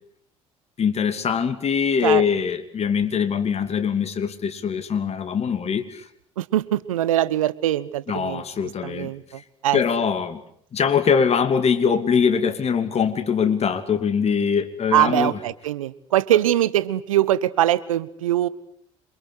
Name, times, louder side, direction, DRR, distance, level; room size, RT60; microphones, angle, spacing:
voice 1, 0.8-6.1 8.1-9.1 9.7-10.4 10.7-15.4, left 6 dB, 40° left, 8 dB, 2.8 m, -22 dB
voice 2, 6.4-8.4 8.8-9.8 14.9-18.5, right 13 dB, 80° right, 17 dB, 1.1 m, -22 dB
27.0 x 23.5 x 8.2 m, 0.64 s
figure-of-eight pair, 55°, 17 cm